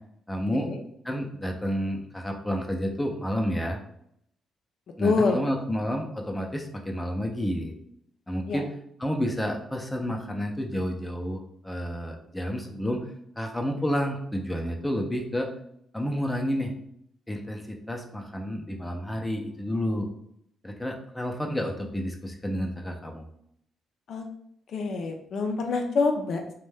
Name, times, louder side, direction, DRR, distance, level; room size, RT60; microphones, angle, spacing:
voice 1, 0.3-0.7 1.0-3.8 5.0-7.7 8.3-8.7 9.0-13.1 13.4-15.5 15.9-16.7 17.3-20.1 20.6-23.2, equal, 10° left, 2 dB, 0.5 m, -30 dB
voice 2, 5.0-5.7 8.5-8.6 24.1-24.3 24.7-26.5, left 4 dB, 65° left, 4 dB, 0.4 m, -26 dB
2.6 x 2.1 x 3.3 m, 0.71 s
cardioid pair, 90°, 0 cm